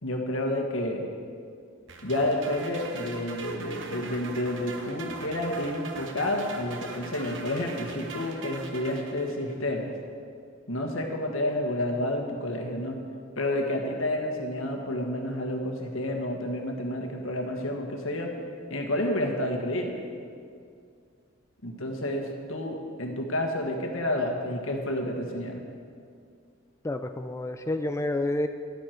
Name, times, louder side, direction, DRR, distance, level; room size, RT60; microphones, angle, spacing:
voice 1, 0.0-1.1 2.0-9.9 10.7-13.0 13.3-18.3 18.7-20.0 21.6-25.7, left 1 dB, 85° left, 2 dB, 1.6 m, -30 dB
sound 1, 1.9-9.6, right 4 dB, 65° right, 1.2 m, -41 dB
voice 2, 26.8-28.5, left 1 dB, 15° left, 7 dB, 0.3 m, -29 dB
13.0 x 11.0 x 4.5 m, 2.3 s
head